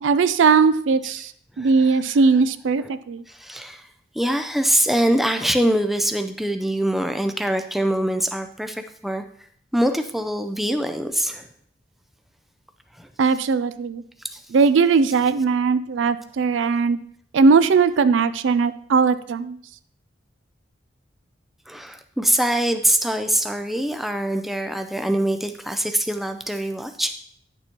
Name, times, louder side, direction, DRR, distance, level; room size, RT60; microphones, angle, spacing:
voice 1, 0.0-1.3 1.6-3.2 13.2-14.0 14.5-17.0 17.3-19.6, right 5 dB, 80° right, 14 dB, 0.4 m, -19 dB
voice 2, 3.3-3.8 4.1-9.2 9.7-11.5 13.0-13.1 14.3-14.4 21.7-27.1, right 1 dB, ahead, 7 dB, 0.4 m, -23 dB
10.0 x 6.9 x 2.9 m, 0.62 s
head